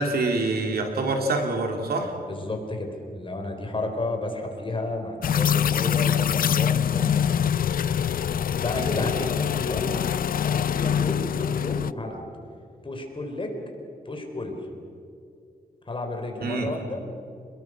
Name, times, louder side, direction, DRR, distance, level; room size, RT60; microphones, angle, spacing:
voice 1, 0.0-2.1 16.4-16.7, right 2 dB, 80° right, 3 dB, 3.3 m, -25 dB
voice 2, 2.3-7.3 8.6-9.9 10.3-12.3 12.8-13.5 14.0-14.7 15.9-17.0, left 2 dB, 35° left, 3 dB, 4.1 m, -32 dB
sound 1, 5.2-11.9, left 8 dB, 65° left, 0.5 m, -24 dB
28.5 x 21.0 x 6.3 m, 2.5 s
wide cardioid pair, 105°, 16 cm